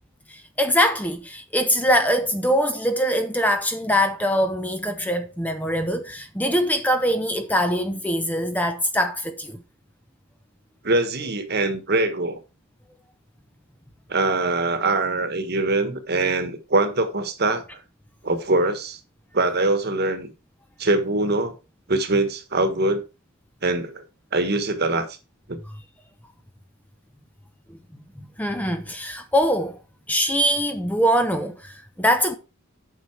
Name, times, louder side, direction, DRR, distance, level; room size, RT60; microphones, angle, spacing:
voice 1, 0.3-9.6 27.7-27.8 28.4-29.8 30.1-32.4, equal, 10° left, 0.7 m, -23 dB
voice 2, 10.8-12.4 14.1-17.8 18.2-19.0 19.3-20.3 20.8-21.5 21.9-23.0 23.6-24.0 24.3-25.1 25.5-25.6, right 2 dB, 50° right, 1.4 m, -23 dB
8.7 x 5.9 x 4.6 m
head